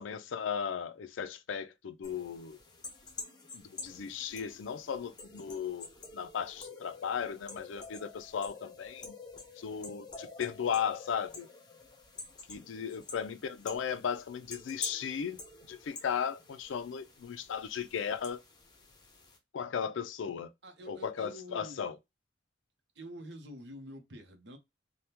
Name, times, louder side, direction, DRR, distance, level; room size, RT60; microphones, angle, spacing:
voice 1, 0.0-2.6 3.5-5.9 6.1-9.1 9.6-11.5 12.5-15.4 15.7-18.4 19.5-20.5 20.9-21.9, left 7 dB, 85° left, 0.4 m, -36 dB
sound 1, 2.0-19.4, left 4 dB, 20° left, 0.7 m, -48 dB
voice 2, 20.6-21.8 22.9-24.6, equal, 65° right, 0.8 m, -47 dB
3.4 x 2.2 x 2.8 m
head